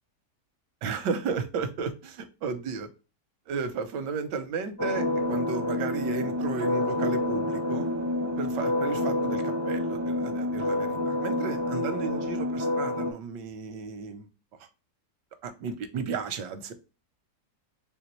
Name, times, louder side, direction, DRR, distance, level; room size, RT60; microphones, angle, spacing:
voice 1, 0.8-2.9 3.5-7.9 8.4-14.3 15.4-16.7, right 5 dB, 85° right, 10 dB, 1.4 m, -34 dB
sound 1, 4.8-13.1, left 1 dB, 20° right, 0.5 m, -28 dB
4.3 x 3.5 x 2.9 m, 0.31 s
omnidirectional pair, 1.8 m